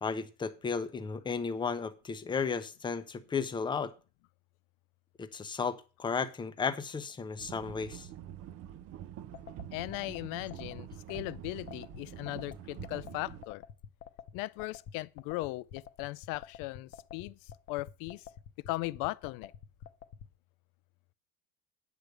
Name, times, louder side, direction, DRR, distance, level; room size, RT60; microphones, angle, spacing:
voice 1, 0.0-3.9 5.2-8.1, left 5 dB, 10° left, 0.7 m, -34 dB
sound 1, 7.4-13.4, right 11 dB, 40° right, 0.6 m, -46 dB
sound 2, 9.3-20.3, left 9 dB, 40° left, 0.9 m, -48 dB
voice 2, 9.7-13.6 14.3-18.3 18.7-19.5, left 20 dB, 60° left, 0.6 m, -38 dB
9.5 x 5.1 x 7.8 m
cardioid pair, 160°, 37 cm